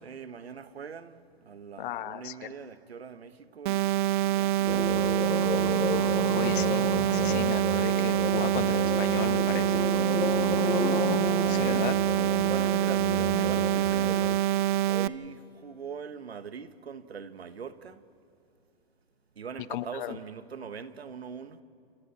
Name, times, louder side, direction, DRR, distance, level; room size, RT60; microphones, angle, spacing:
voice 1, 0.0-6.4 10.5-10.9 11.6-11.9 12.5-14.3 14.9-18.0 19.3-21.6, right 6 dB, 90° right, 1.2 m, -42 dB
voice 2, 1.8-2.5 6.3-6.9 7.1-9.8 10.6-11.0 11.5-11.9 19.7-20.2, left 13 dB, 55° left, 1.0 m, -35 dB
sound 1, 3.7-15.1, right 13 dB, 55° right, 0.6 m, -26 dB
sound 2, 4.7-14.4, left 5 dB, 10° left, 1.1 m, -32 dB
29.0 x 28.5 x 4.3 m
hypercardioid pair, 120°, 31 cm